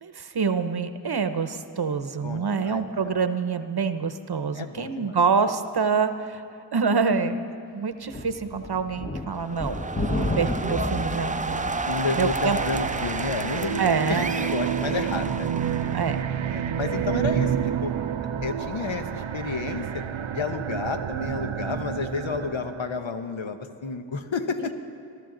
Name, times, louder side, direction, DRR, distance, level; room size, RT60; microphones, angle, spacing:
voice 1, 0.0-6.4 6.7-9.8 10.1-11.8 12.2-12.6 13.8-14.3 15.9-16.2 24.6-24.7, right 5 dB, 55° right, 10 dB, 0.8 m, -26 dB
voice 2, 2.2-3.1 4.5-5.2 10.2-10.5 11.9-13.8 14.1-15.5 16.5-17.9 18.4-20.0 20.3-24.7, left 4 dB, 75° left, 7 dB, 1.0 m, -31 dB
sound 1, 8.0-18.7, left 1 dB, 20° left, 1.1 m, -34 dB
sound 2, 9.3-16.2, right 3 dB, 15° right, 0.5 m, -32 dB
sound 3, 12.4-23.0, right 9 dB, 90° right, 0.6 m, -29 dB
21.0 x 12.5 x 3.9 m, 2.7 s
wide cardioid pair, 50°, 46 cm